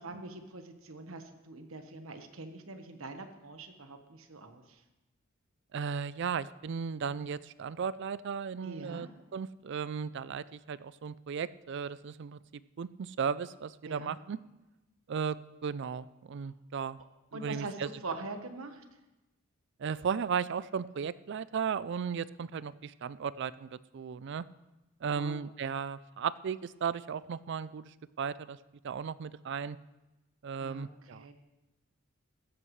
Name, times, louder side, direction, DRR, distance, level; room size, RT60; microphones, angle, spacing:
voice 1, 0.0-4.8 8.6-9.1 13.8-14.2 17.3-18.8 25.1-25.4 30.6-31.3, right 3 dB, 75° right, 7 dB, 1.2 m, -43 dB
voice 2, 5.7-12.4 12.8-14.4 15.1-15.4 15.6-17.0 17.3-17.9 19.8-24.4 25.0-28.6 28.8-29.8 30.4-31.3, right 6 dB, 55° right, 18 dB, 0.4 m, -35 dB
15.5 x 13.0 x 3.2 m, 1.0 s
head